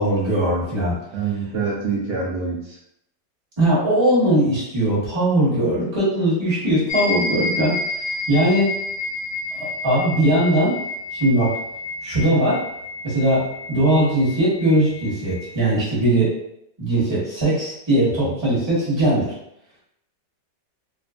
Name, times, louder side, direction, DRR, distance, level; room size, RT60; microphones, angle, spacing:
voice 1, 0.0-0.9 3.6-7.7 8.3-8.8 9.6-10.8 11.1-11.5 12.0-12.6 13.0-16.3 16.8-19.3, right 1 dB, 20° right, -8 dB, 0.8 m, -20 dB
voice 2, 1.1-2.8 18.2-18.3, right 5 dB, 85° right, -5 dB, 0.6 m, -26 dB
sound 1, 6.9-15.6, left 3 dB, 85° left, 1.3 m, -30 dB
2.8 x 2.3 x 2.4 m, 0.77 s
omnidirectional pair, 1.9 m